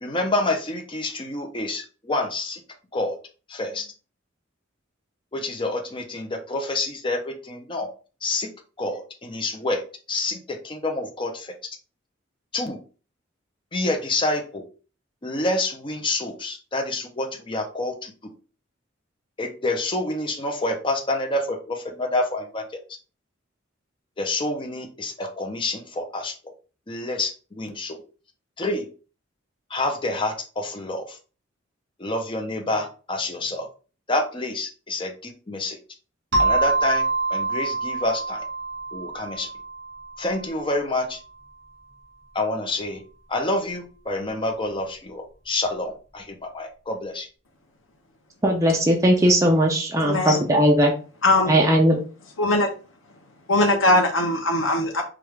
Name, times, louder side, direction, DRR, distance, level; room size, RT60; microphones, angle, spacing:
voice 1, 0.0-2.6 2.9-3.1 3.5-3.9 5.3-7.9 8.2-8.5 8.8-9.8 10.1-11.5 12.5-12.8 13.7-14.6 15.2-18.1 19.4-22.6 24.2-26.3 26.9-28.0 28.6-28.8 29.7-31.2 32.0-33.7 34.1-35.8 36.4-38.4 38.9-39.5 40.2-41.2 42.3-43.0 43.3-47.3, left 2 dB, 25° left, 0.7 m, -28 dB
sound 1, 36.3-40.7, right 3 dB, 65° right, 1.8 m, -26 dB
voice 2, 48.4-50.9 51.5-52.0, right 1 dB, 15° right, 0.6 m, -18 dB
voice 3, 50.0-50.4 51.2-51.5 52.4-52.7 53.5-55.0, left 1 dB, 85° left, 0.8 m, -20 dB
4.8 x 2.5 x 3.3 m
head